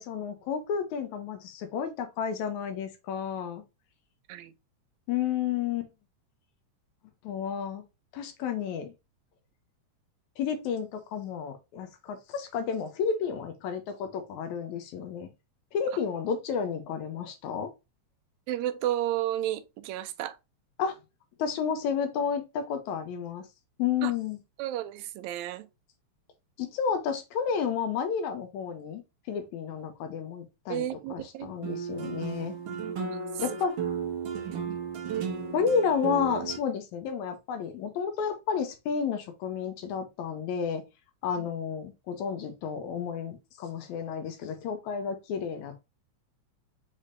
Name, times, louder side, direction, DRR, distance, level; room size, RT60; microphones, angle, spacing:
voice 1, 0.0-3.6 5.1-5.9 7.2-7.8 8.1-8.9 10.4-15.3 15.7-17.7 20.8-21.0 21.4-23.5 23.8-24.4 26.6-29.0 29.3-32.6 33.4-33.8 35.5-40.8 41.2-45.9, left 7 dB, 85° left, 2.1 m, -31 dB
voice 2, 18.5-20.4 24.0-24.1 24.6-25.7 30.7-31.5 34.7-34.8 41.4-41.5, right 13 dB, 80° right, 1.8 m, -32 dB
sound 1, 31.6-36.6, right 6 dB, 65° right, 1.3 m, -34 dB
5.3 x 3.4 x 2.5 m
omnidirectional pair, 3.3 m